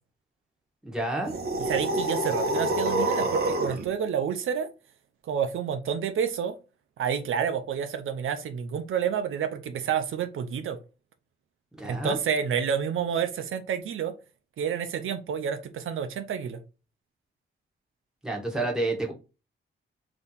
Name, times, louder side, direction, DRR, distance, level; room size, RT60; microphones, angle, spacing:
voice 1, 0.8-1.4 11.8-12.2 18.2-19.1, right 2 dB, 5° right, 1.3 m, -29 dB
sound 1, 1.2-3.9, right 1 dB, 50° right, 0.9 m, -27 dB
voice 2, 1.7-4.7 5.3-6.5 7.0-10.8 11.8-14.1 14.6-16.6, right 7 dB, 80° right, 0.6 m, -29 dB
3.6 x 2.9 x 4.0 m
wide cardioid pair, 110°, 21 cm